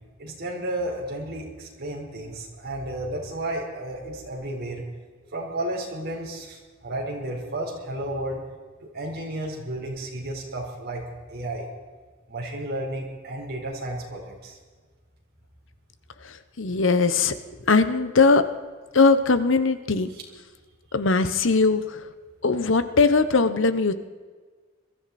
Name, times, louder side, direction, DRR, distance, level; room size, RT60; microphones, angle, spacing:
voice 1, 0.2-4.8 5.3-8.4 8.8-11.0 11.3-11.7 12.3-14.6 20.1-20.2, right 1 dB, 55° right, -1 dB, 4.4 m, -32 dB
voice 2, 16.6-17.3 17.7-18.4 18.9-20.1 20.9-21.8 22.4-23.9, left 4 dB, 70° left, 12 dB, 1.0 m, -20 dB
22.0 x 13.5 x 4.3 m, 1.5 s
head